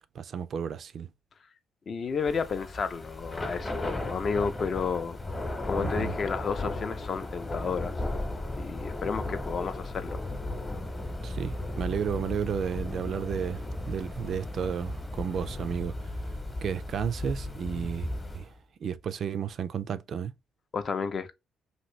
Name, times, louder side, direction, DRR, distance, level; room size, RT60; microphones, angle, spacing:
voice 1, 0.1-1.1 5.8-6.2 11.2-15.9 16.6-18.5 18.8-20.3, right 7 dB, 60° right, 0.3 m, -33 dB
voice 2, 1.9-5.2 5.7-8.0 8.6-10.2 20.7-21.3, left 5 dB, 50° left, 0.4 m, -31 dB
Thunder / Rain, 2.2-18.5, left 2 dB, 25° left, 0.8 m, -35 dB
sound 1, 10.7-15.8, right 1 dB, 5° right, 0.5 m, -45 dB
2.8 x 2.6 x 3.1 m
cardioid pair, 90°, 0 cm